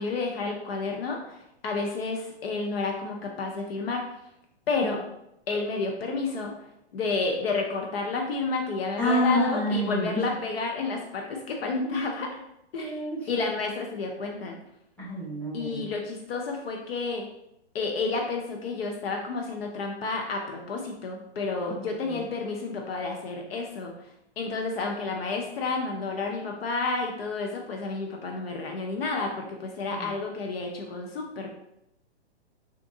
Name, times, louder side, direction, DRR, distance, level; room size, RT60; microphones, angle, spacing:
voice 1, 0.0-4.0 4.7-5.0 5.5-6.5 6.9-12.3 12.7-13.0 13.3-14.6 15.5-17.2 17.7-23.9 24.4-31.5, left 3 dB, 60° left, 2 dB, 0.6 m, -30 dB
voice 2, 9.0-10.2 11.7-11.9 12.7-13.2 15.0-15.8 29.9-30.1, equal, 5° left, -8 dB, 1.1 m, -28 dB
3.4 x 2.6 x 2.6 m, 0.81 s
hypercardioid pair, 155°, 33 cm